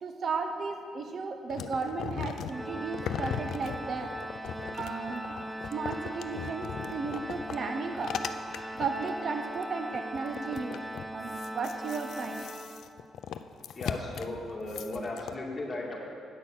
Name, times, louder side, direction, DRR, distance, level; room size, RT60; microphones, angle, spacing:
voice 1, 0.0-4.1 4.8-5.3 5.7-8.2 8.7-10.8 11.1-12.5, right 4 dB, 50° right, 6 dB, 0.7 m, -34 dB
sound 1, 1.5-9.1 9.6-9.7 9.9-15.4, left 8 dB, 70° left, 0.4 m, -38 dB
Organ, 2.5-13.2, right 1 dB, 5° right, 0.3 m, -40 dB
sound 2, 4.7-5.5 5.9-6.2 6.5-8.0 8.2-8.3 8.5-10.0 10.3-10.9 11.2-11.7, left 3 dB, 45° left, 1.3 m, -54 dB
voice 2, 13.7-16.0, left 2 dB, 25° left, -3 dB, 2.3 m, -36 dB
8.7 x 6.2 x 7.2 m, 2.4 s
cardioid pair, 90°, 0 cm